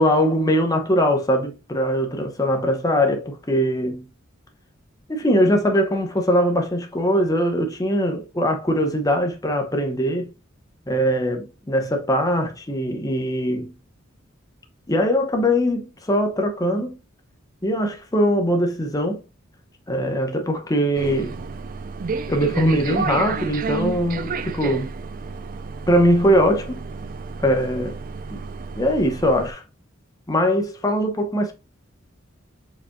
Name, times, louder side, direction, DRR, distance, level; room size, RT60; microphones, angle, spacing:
voice 1, 0.0-4.1 5.1-10.3 10.9-13.7 14.9-17.0 17.6-19.2 19.9-21.4 22.3-24.9 25.9-26.8 27.4-28.0 28.3-28.4 28.8-29.6 30.3-31.5, equal, 20° left, 0.8 m, -21 dB
sound 1, 21.0-29.5, right 4 dB, 45° right, 0.4 m, -31 dB
5.1 x 4.2 x 2.2 m
head